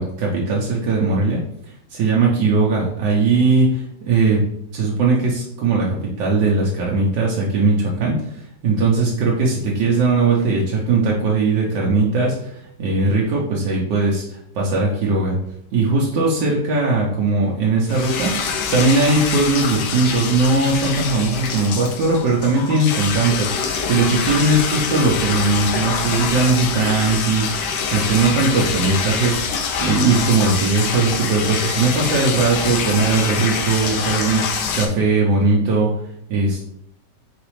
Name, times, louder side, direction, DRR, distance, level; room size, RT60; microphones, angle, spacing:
voice 1, 0.0-1.4 1.9-4.4 4.7-8.2 8.6-15.4 15.7-35.9 36.3-36.6, right 3 dB, 80° right, -3 dB, 1.4 m, -19 dB
sound 1, 17.9-34.9, left 6 dB, 80° left, 1.2 m, -25 dB
sound 2, 21.3-22.4, left 2 dB, 50° left, 1.1 m, -42 dB
4.0 x 4.0 x 3.1 m, 0.70 s
omnidirectional pair, 1.8 m